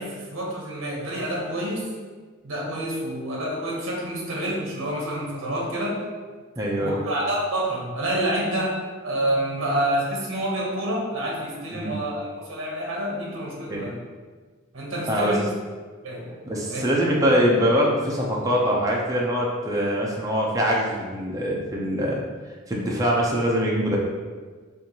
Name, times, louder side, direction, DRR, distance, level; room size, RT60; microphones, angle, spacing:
voice 1, 0.0-1.9 2.4-6.0 6.8-14.0 14.7-15.4 16.0-16.3 16.7-17.1, right 1 dB, 70° right, -2 dB, 0.8 m, -28 dB
voice 2, 6.6-7.0 11.7-12.0 13.7-13.9 15.1-15.4 16.4-22.2 22.7-24.0, equal, 15° right, -3 dB, 0.5 m, -23 dB
4.4 x 2.5 x 2.7 m, 1.4 s
head